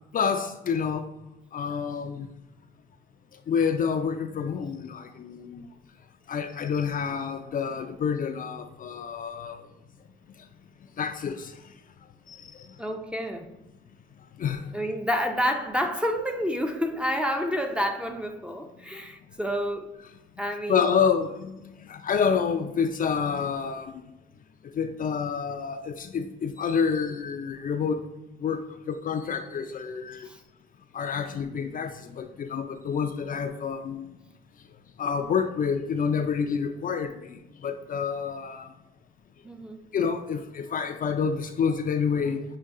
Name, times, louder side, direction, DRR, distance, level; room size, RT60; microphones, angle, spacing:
voice 1, 0.1-1.1 1.5-2.3 3.5-5.7 6.3-9.7 11.0-11.6 12.3-12.7 14.4-14.8 18.9-19.0 20.7-24.0 24.6-28.1 28.4-30.3 30.9-34.1 35.0-38.7 39.9-42.4, left 6 dB, 45° left, 6 dB, 0.4 m, -28 dB
voice 2, 12.8-13.5 14.7-19.9 20.4-20.9 30.2-30.4 39.4-39.8, equal, 5° right, 4 dB, 0.5 m, -29 dB
6.6 x 2.2 x 3.6 m, 0.96 s
cardioid pair, 90°, 20 cm